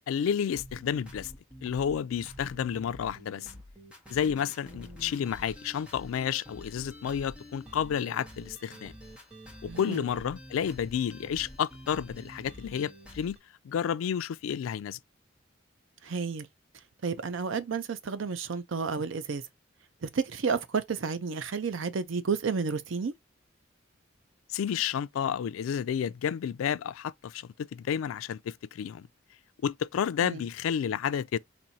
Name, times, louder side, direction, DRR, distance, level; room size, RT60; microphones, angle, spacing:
voice 1, 0.1-1.3 1.6-3.5 4.1-8.9 9.6-13.4 13.6-15.0 24.5-29.1 29.6-31.4, left 8 dB, 90° left, 0.3 m, -31 dB
sound 1, 0.5-13.4, equal, 5° right, 0.9 m, -48 dB
voice 2, 9.7-10.0 16.0-16.5 17.0-19.4 20.0-23.1 30.2-30.4, right 5 dB, 75° right, 0.5 m, -31 dB
4.3 x 2.7 x 2.7 m
head